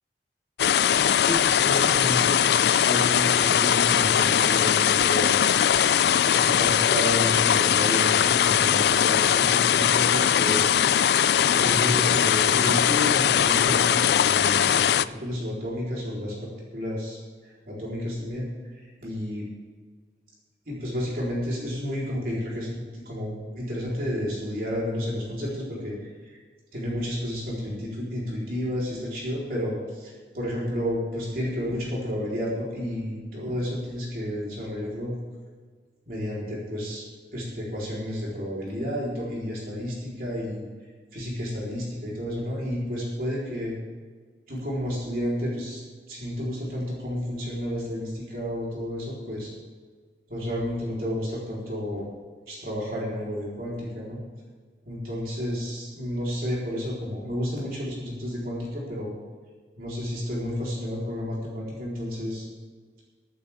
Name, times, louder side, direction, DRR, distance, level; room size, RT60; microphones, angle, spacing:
sound 1, 0.6-15.1, left 9 dB, 70° left, 0.3 m, -21 dB
voice 1, 1.1-5.4 6.2-10.7 11.5-18.5 18.7-19.5 20.7-26.0 26.2-26.4 26.7-35.1 36.1-37.0 37.3-40.6 41.1-43.8 44.5-45.8 46.1-49.5 50.3-52.1 52.5-54.2 54.9-59.1 59.8-62.5, equal, 55° right, -5 dB, 4.1 m, -31 dB
22.5 x 9.3 x 3.6 m, 1.5 s
head